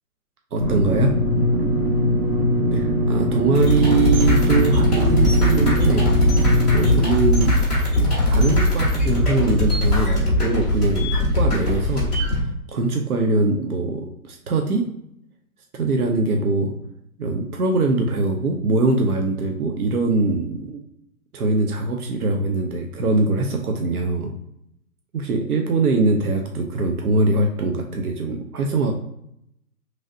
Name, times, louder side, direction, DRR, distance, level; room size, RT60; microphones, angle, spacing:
voice 1, 0.5-1.1 2.7-6.1 6.7-7.6 8.3-12.1 12.4-14.8 15.7-16.7 17.2-20.8 21.3-24.3 25.1-28.9, right 3 dB, 80° right, 3 dB, 0.7 m, -22 dB
sound 1, 0.6-7.0, equal, 40° right, 0.7 m, -21 dB
sound 2, 3.5-12.4, left 1 dB, ahead, 0.4 m, -20 dB
3.1 x 2.7 x 2.5 m, 0.76 s
figure-of-eight pair, 125°, 45 cm